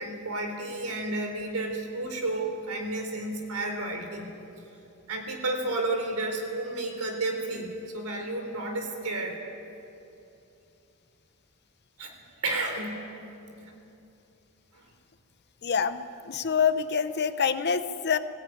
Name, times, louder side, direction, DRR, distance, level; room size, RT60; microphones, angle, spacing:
voice 1, 0.0-4.3 5.1-9.4 12.0-12.1 12.4-13.0 13.5-13.7 14.7-14.9, right 2 dB, 85° right, 3 dB, 3.7 m, -31 dB
voice 2, 15.6-18.2, left 6 dB, 50° left, 11 dB, 0.8 m, -26 dB
19.5 x 16.5 x 9.3 m, 2.7 s
head